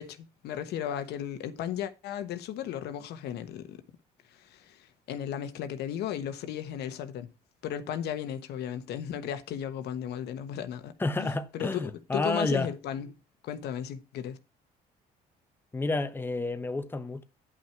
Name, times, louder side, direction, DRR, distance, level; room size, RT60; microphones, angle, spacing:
voice 1, 0.0-3.8 4.3-7.3 7.6-10.9 11.2-13.1 13.4-14.4, left 10 dB, 75° left, 1.2 m, -35 dB
voice 2, 11.0-12.7 15.7-17.2, left 2 dB, 10° left, 1.0 m, -30 dB
9.9 x 5.9 x 4.5 m
cardioid pair, 110°, 17 cm